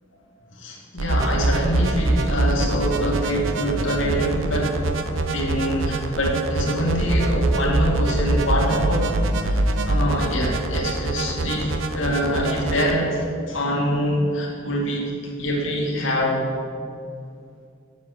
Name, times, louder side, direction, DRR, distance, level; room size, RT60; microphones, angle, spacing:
voice 1, 0.5-4.8 5.3-9.1 9.5-16.4, equal, 80° left, -3 dB, 2.3 m, -24 dB
sound 1, 1.0-13.0, right 2 dB, 80° right, 0.7 m, -24 dB
7.9 x 7.4 x 7.5 m, 2.3 s
head